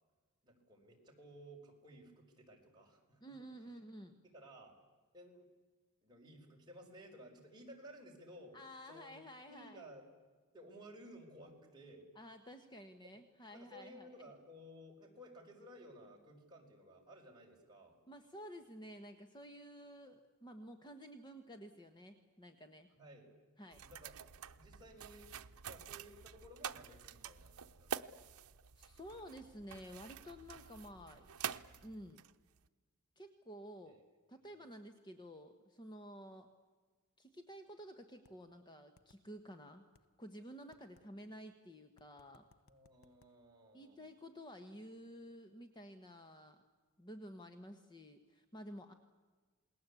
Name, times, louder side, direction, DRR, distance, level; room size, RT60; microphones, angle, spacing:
voice 1, 0.4-3.4 4.2-4.7 5.1-5.5 6.0-8.6 8.9-9.2 9.5-10.0 10.5-12.1 13.5-18.0 22.9-23.3 23.8-24.2 24.5-25.3 25.6-28.2 33.9-34.0 34.5-34.7 42.6-44.0, equal, 20° right, -1 dB, 5.2 m, -56 dB
voice 2, 3.2-4.2 8.5-9.8 12.1-14.3 18.1-22.9 23.6-23.8 28.8-31.5 31.8-32.2 33.2-34.0 34.3-36.5 37.2-39.9 40.2-42.5 43.7-46.6 47.0-48.9, equal, 20° left, 7 dB, 1.3 m, -52 dB
sound 1, 23.7-32.7, right 7 dB, 80° right, 0.8 m, -48 dB
sound 2, 38.2-38.3 39.0-39.2 39.9-40.1 40.7-41.1 42.0-43.3, left 4 dB, 65° left, 0.9 m, -67 dB
28.5 x 20.5 x 8.4 m, 1.4 s
head